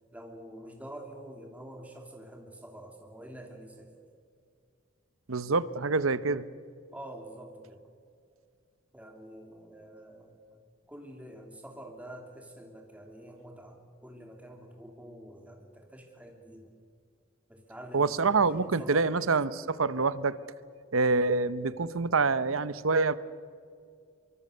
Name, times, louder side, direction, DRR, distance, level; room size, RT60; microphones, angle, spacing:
voice 1, 0.1-3.9 6.9-7.8 8.9-10.6 10.9-16.7 17.5-19.3, right 1 dB, 5° right, 2 dB, 3.1 m, -47 dB
voice 2, 5.3-6.4 17.9-20.4 20.9-23.1, right 4 dB, 85° right, 16 dB, 0.9 m, -26 dB
24.5 x 24.0 x 6.8 m, 2.3 s
head